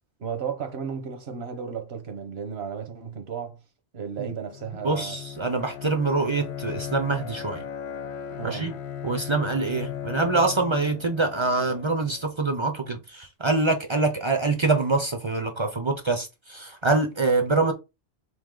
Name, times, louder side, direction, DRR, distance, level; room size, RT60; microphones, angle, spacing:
voice 1, 0.2-3.6 3.9-5.2 8.4-8.7, right 7 dB, 80° right, 1.2 m, -34 dB
Bowed string instrument, 4.5-12.3, left 9 dB, 85° left, 0.9 m, -37 dB
voice 2, 4.8-7.6 8.4-8.7 9.0-17.7, right 3 dB, 35° right, 0.5 m, -25 dB
3.5 x 2.8 x 3.7 m
omnidirectional pair, 1.1 m